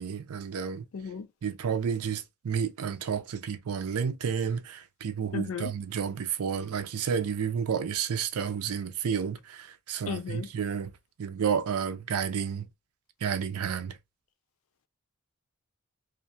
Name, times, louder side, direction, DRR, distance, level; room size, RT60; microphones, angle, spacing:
voice 1, 0.0-0.9 1.4-10.9 11.2-12.7 13.2-14.0, right 7 dB, 90° right, 0.4 m, -31 dB
voice 2, 0.9-1.3 5.3-5.7 10.1-10.5, left 5 dB, 70° left, 0.4 m, -34 dB
2.5 x 2.2 x 2.6 m
head